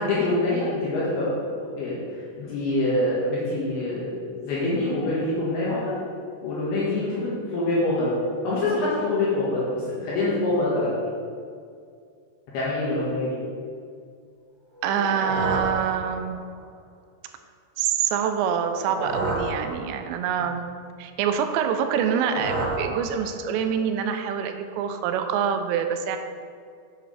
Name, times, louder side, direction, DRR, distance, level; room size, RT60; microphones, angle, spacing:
voice 1, 0.0-2.0 2.4-4.1 4.4-6.0 6.4-8.1 8.4-10.9 12.5-13.4, left 2 dB, 70° left, -8 dB, 3.3 m, -25 dB
sound 1, 14.7-16.6 18.5-20.4 21.8-23.7, right 2 dB, 55° right, 2.9 m, -31 dB
voice 2, 14.8-16.5 17.8-20.7 21.0-26.2, right 7 dB, 90° right, 7 dB, 2.8 m, -26 dB
9.0 x 7.5 x 3.3 m, 2.3 s
omnidirectional pair, 5.0 m